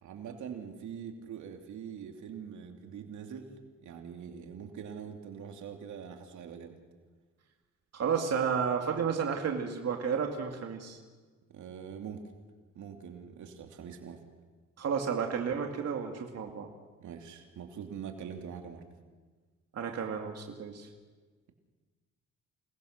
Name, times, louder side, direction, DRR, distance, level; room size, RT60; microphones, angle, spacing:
voice 1, 0.0-3.5 3.8-6.8 11.5-12.2 12.7-14.2 17.0-18.8, right 7 dB, 75° right, 4 dB, 2.9 m, -43 dB
voice 2, 7.9-11.0 14.8-16.7 19.7-20.9, right 6 dB, 55° right, 2 dB, 2.5 m, -32 dB
28.5 x 19.0 x 6.7 m, 1.4 s
cardioid pair, 90°, 30 cm